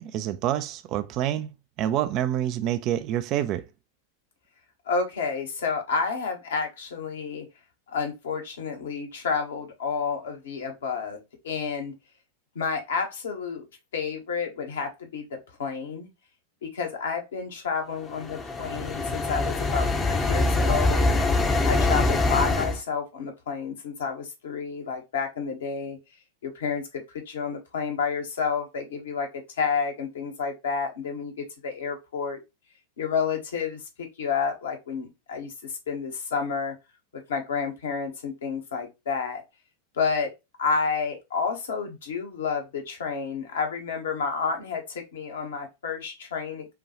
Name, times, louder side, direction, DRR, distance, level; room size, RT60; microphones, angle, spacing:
voice 1, 0.0-1.5 1.8-3.6, right 11 dB, 40° right, 0.4 m, -27 dB
voice 2, 4.9-7.4 7.9-11.2 11.4-11.9 12.5-13.6 13.9-16.1 16.7-21.1 21.6-26.0 26.4-32.4 33.0-33.8 34.2-36.7 37.1-39.4 40.0-40.3 40.6-46.7, left 5 dB, 65° left, 1.1 m, -30 dB
sound 1, 18.1-22.8, left 2 dB, 20° left, 0.7 m, -24 dB
5.5 x 2.3 x 2.9 m
figure-of-eight pair, 90°, 0 cm